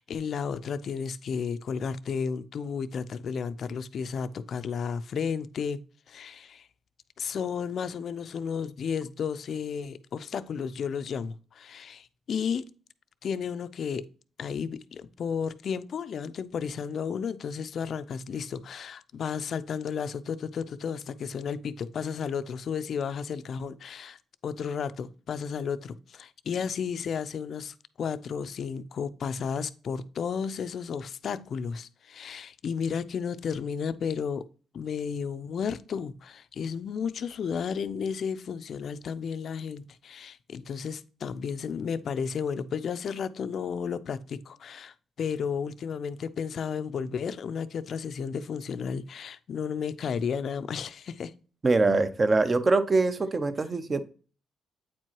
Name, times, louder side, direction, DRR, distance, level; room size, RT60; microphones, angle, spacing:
voice 1, 0.0-5.8 6.1-6.7 7.2-12.7 13.2-14.1 14.4-24.2 24.4-34.4 34.7-51.3, left 6 dB, 55° left, 0.4 m, -33 dB
voice 2, 51.6-54.0, right 3 dB, 30° right, 0.7 m, -23 dB
8.5 x 4.5 x 2.9 m
cardioid pair, 90°, 0 cm